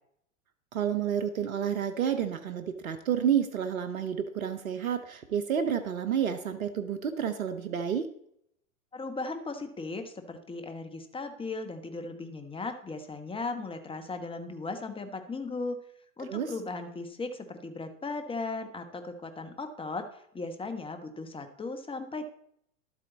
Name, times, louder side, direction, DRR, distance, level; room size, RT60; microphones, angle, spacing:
voice 1, 0.7-8.1 16.3-16.5, right 8 dB, 85° right, 10 dB, 1.0 m, -30 dB
voice 2, 8.9-15.8 16.2-20.1 20.3-22.3, left 3 dB, 15° left, 7 dB, 1.4 m, -37 dB
12.0 x 8.4 x 4.1 m, 0.70 s
hypercardioid pair, 100°, 40 cm